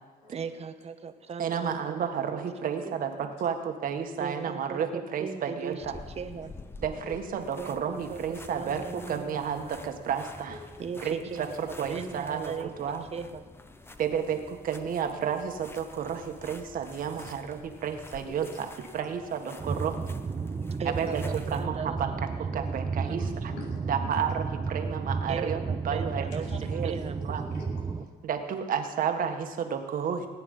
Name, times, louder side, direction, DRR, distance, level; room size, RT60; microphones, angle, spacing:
voice 1, 0.3-1.9 2.3-2.4 2.8-3.0 4.2-5.8 6.2-6.5 7.6-9.8 10.8-11.4 11.9-12.7 13.1-13.4 20.8-22.7 23.0-23.2 25.3-26.6 26.8-27.2, right 6 dB, 40° right, 9 dB, 1.1 m, -38 dB
voice 2, 1.4-5.9 6.8-10.6 11.0-13.1 14.0-18.7 18.9-20.0 20.9-23.5 23.9-26.3 26.7-26.9 27.2-27.4 28.2-30.3, right 7 dB, 55° right, 6 dB, 1.6 m, -32 dB
sound 1, 5.8-21.7, left 2 dB, 15° left, 0.8 m, -48 dB
voice 3, 17.9-18.4 19.0-19.1 20.2-20.8 23.1-24.2 26.4-26.9 27.2-28.3, left 3 dB, 75° left, -2 dB, 4.1 m, -47 dB
sound 2, 19.6-28.1, right 5 dB, 20° right, 0.7 m, -32 dB
18.5 x 9.7 x 5.6 m, 1.5 s
cardioid pair, 110°, 17 cm